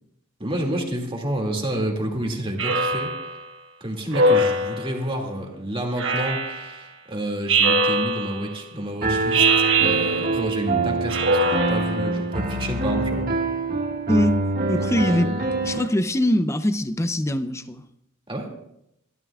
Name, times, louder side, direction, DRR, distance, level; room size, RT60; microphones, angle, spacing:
voice 1, 0.4-3.1 3.8-13.3 14.7-15.5 18.3-18.5, right 1 dB, 25° right, 2.3 m, -29 dB
Speech synthesizer, 2.6-3.4 4.1-5.0 6.0-6.8 7.5-8.5 9.3-10.5 11.1-12.1, right 2 dB, 65° right, 1.4 m, -22 dB
Piano, 9.0-15.9, right 2 dB, 45° right, 1.8 m, -25 dB
voice 2, 14.1-14.4 14.7-15.3 15.6-17.8, left 1 dB, 15° left, 0.5 m, -22 dB
25.0 x 12.5 x 2.4 m
head